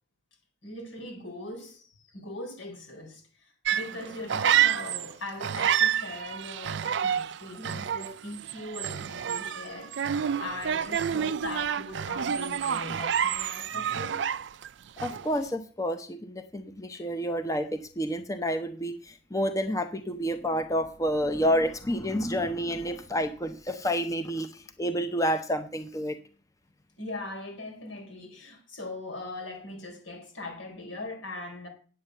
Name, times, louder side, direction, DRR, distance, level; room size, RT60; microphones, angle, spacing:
voice 1, 0.6-3.2 3.7-14.2 16.9-17.1 27.0-31.7, left 2 dB, 90° left, 4.3 m, -40 dB
sound 1, 3.6-5.1 5.4-14.7 15.0-15.4, right 9 dB, 65° right, 0.4 m, -28 dB
voice 2, 15.0-26.2, equal, 15° left, 0.7 m, -29 dB
9.4 x 8.2 x 6.6 m
head